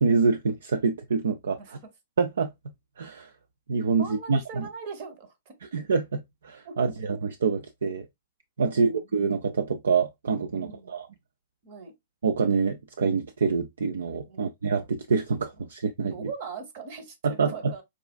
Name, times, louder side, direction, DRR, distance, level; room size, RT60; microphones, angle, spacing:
voice 1, 0.0-1.8 2.2-2.5 3.0-3.3 3.7-4.6 5.7-7.2 7.4-8.1 8.6-11.1 12.2-16.3 17.2-17.7, right 5 dB, 75° right, 0.3 m, -26 dB
voice 2, 4.0-5.5 6.6-6.8 8.7-9.1 10.5-10.9 11.6-11.9 14.3-14.6 16.1-17.8, right 5 dB, 50° right, 1.0 m, -40 dB
4.8 x 2.3 x 2.2 m
hypercardioid pair, 110°, 0 cm